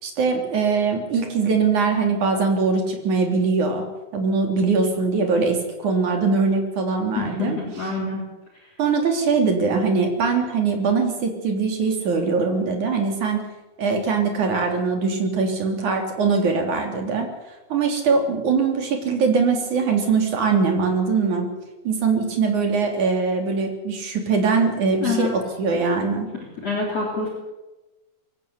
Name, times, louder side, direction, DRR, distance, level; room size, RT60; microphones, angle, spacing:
voice 1, 0.0-3.8 4.1-7.6 8.8-13.4 13.8-17.3 17.7-21.5 21.8-26.3, right 4 dB, 45° right, 3 dB, 4.2 m, -22 dB
voice 2, 7.2-8.3 25.0-25.3 26.6-27.3, left 4 dB, 35° left, -1 dB, 4.4 m, -26 dB
23.5 x 16.0 x 8.3 m, 1.1 s
omnidirectional pair, 5.6 m